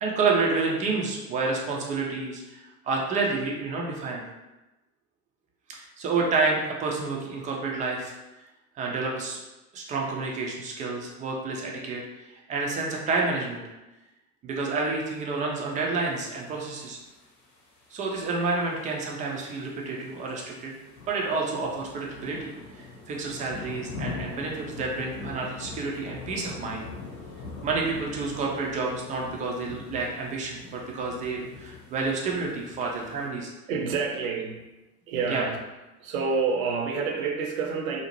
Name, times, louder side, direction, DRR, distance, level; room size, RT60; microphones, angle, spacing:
voice 1, 0.0-4.2 5.7-8.1 8.8-9.4 9.7-13.6 14.4-17.0 17.9-20.8 21.1-26.8 27.6-33.5 35.3-35.4, right 3 dB, 20° right, -1 dB, 0.3 m, -29 dB
sound 1, 16.1-33.3, left 3 dB, 40° left, 0.8 m, -43 dB
voice 2, 33.7-34.7 35.1-35.6 36.0-38.0, right 5 dB, 65° right, 2 dB, 0.6 m, -28 dB
2.6 x 2.0 x 2.9 m, 1.0 s
figure-of-eight pair, 65°, 43 cm